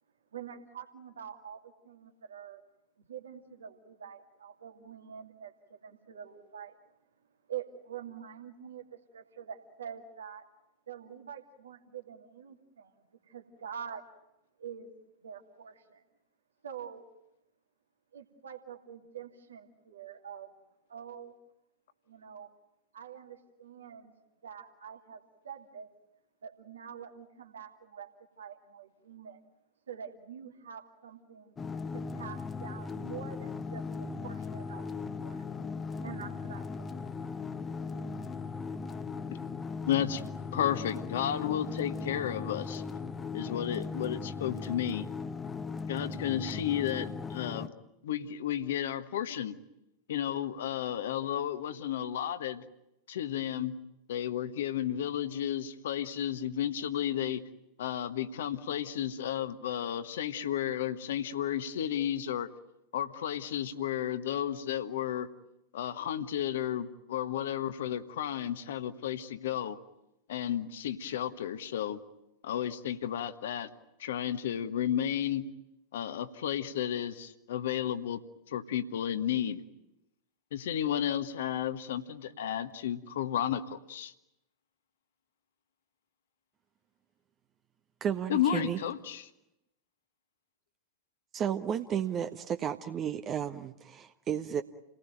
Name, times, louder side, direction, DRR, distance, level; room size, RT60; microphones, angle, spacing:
voice 1, 0.3-2.6 3.0-6.7 7.5-10.5 10.9-14.1 14.6-14.9 15.2-16.0 16.6-17.1 18.1-20.5 20.9-21.3 22.1-22.5 22.9-24.1 24.4-25.9 26.4-28.1 28.4-29.4 29.9-31.5 31.9-33.8 34.2-35.4 36.0-37.3, right 8 dB, 70° right, 4 dB, 2.6 m, -46 dB
sound 1, 31.6-47.7, left 4 dB, 15° left, 1.3 m, -38 dB
voice 2, 39.9-40.2 40.5-42.8 43.3-45.1 45.9-47.7 48.0-49.5 50.1-52.6 53.1-53.8 54.1-57.4 57.8-62.5 62.9-65.3 65.7-69.8 70.3-72.0 72.4-73.7 74.0-75.5 75.9-78.2 78.5-79.6 80.5-84.1 88.3-89.3, left 10 dB, 60° left, 11 dB, 1.5 m, -32 dB
voice 3, 88.0-88.8 91.3-94.6, right 8 dB, 30° right, 8 dB, 1.0 m, -33 dB
29.5 x 19.0 x 9.2 m, 0.90 s
figure-of-eight pair, 90°, 0 cm